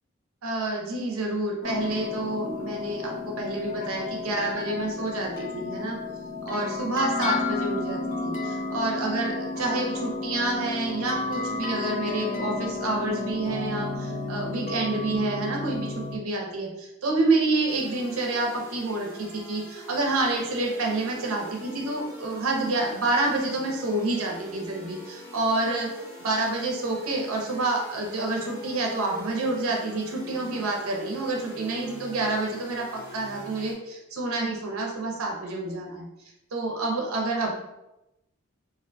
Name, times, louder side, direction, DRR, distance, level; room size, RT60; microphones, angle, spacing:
voice 1, 0.4-6.0 6.5-25.9 26.2-36.1 36.5-37.6, right 2 dB, 90° right, 0 dB, 0.6 m, -28 dB
sound 1, 1.6-16.2, left 3 dB, 40° left, 0.3 m, -32 dB
sound 2, 17.7-33.7, equal, 15° right, 0.6 m, -44 dB
2.4 x 2.1 x 2.6 m, 0.90 s
head